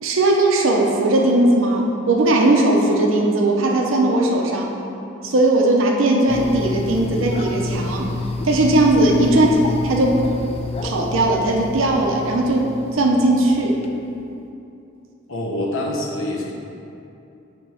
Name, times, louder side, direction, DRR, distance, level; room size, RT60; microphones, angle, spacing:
voice 1, 0.0-4.7 5.2-8.1 8.4-9.5 9.8-10.2 10.8-12.6 12.9-13.8, right 2 dB, 80° right, 0 dB, 0.7 m, -18 dB
sound 1, 6.3-13.9, left 2 dB, 30° left, 0.4 m, -29 dB
voice 2, 9.3-9.6 15.3-16.5, left 1 dB, 80° left, -2 dB, 0.8 m, -26 dB
8.6 x 3.0 x 5.0 m, 2.7 s
head